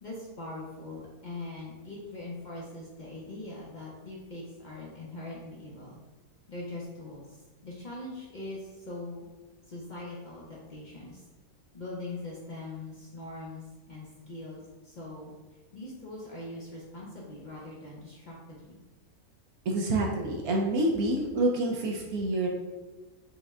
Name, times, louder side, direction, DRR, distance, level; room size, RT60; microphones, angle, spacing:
voice 1, 0.0-6.0 6.5-9.3 9.7-11.2 11.7-15.3 15.7-18.8, left 2 dB, 50° left, -5 dB, 0.5 m, -42 dB
voice 2, 19.7-22.5, right 1 dB, 75° right, 0 dB, 1.1 m, -27 dB
5.1 x 2.1 x 3.5 m, 1.2 s
omnidirectional pair, 1.6 m